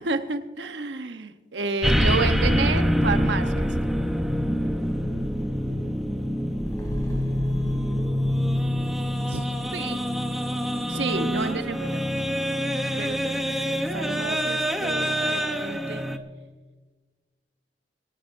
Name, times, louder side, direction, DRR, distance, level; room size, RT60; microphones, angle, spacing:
voice 1, 0.0-3.7 10.9-11.8, right 3 dB, 85° right, 8 dB, 1.0 m, -28 dB
sound 1, 1.8-16.2, equal, ahead, 0.8 m, -25 dB
sound 2, 6.5-11.1 11.4-11.5, equal, 20° left, 3.1 m, -37 dB
voice 2, 9.3-10.0 11.2-12.0 13.0-16.0, right 4 dB, 70° right, 8 dB, 0.5 m, -37 dB
26.5 x 12.0 x 2.6 m, 1.3 s
head